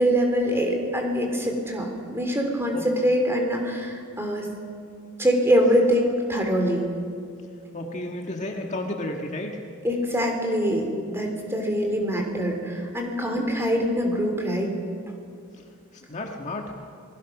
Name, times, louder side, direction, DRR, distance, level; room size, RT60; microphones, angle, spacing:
voice 1, 0.0-4.5 5.2-6.8 9.8-14.7, equal, 10° right, 2 dB, 3.4 m, -24 dB
voice 2, 7.7-9.6 15.9-16.7, left 1 dB, 35° left, 1 dB, 1.7 m, -32 dB
28.5 x 20.5 x 6.1 m, 2.3 s
head